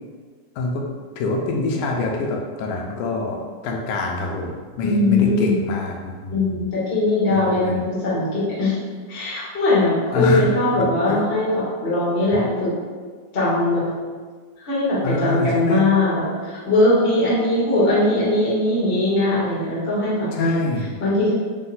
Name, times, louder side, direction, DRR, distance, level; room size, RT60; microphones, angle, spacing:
voice 1, 1.2-6.6 7.3-7.8 10.1-11.3 15.0-15.9 20.3-20.9, left 2 dB, 90° left, 1 dB, 2.1 m, -25 dB
voice 2, 4.8-5.5 6.3-8.8 9.1-12.7 13.3-13.9 14.6-20.6 21.0-21.3, left 2 dB, 70° left, -9 dB, 0.5 m, -20 dB
5.0 x 2.2 x 3.9 m, 1.5 s
omnidirectional pair, 3.5 m